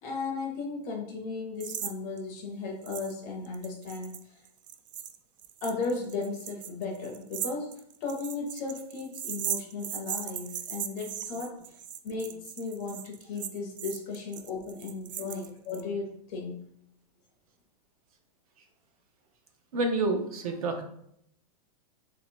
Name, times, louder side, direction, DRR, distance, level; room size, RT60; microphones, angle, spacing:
voice 1, 0.0-4.4 5.6-11.8 12.0-16.6, left 4 dB, 25° left, 0 dB, 0.5 m, -36 dB
sound 1, 1.6-1.9 2.2-2.3 2.9-3.1 3.4-15.8, right 9 dB, 90° right, 0.5 m, -38 dB
voice 2, 19.7-20.8, right 2 dB, 60° right, 5 dB, 0.7 m, -29 dB
3.1 x 2.8 x 4.3 m, 0.71 s
supercardioid pair, 180°, 21 cm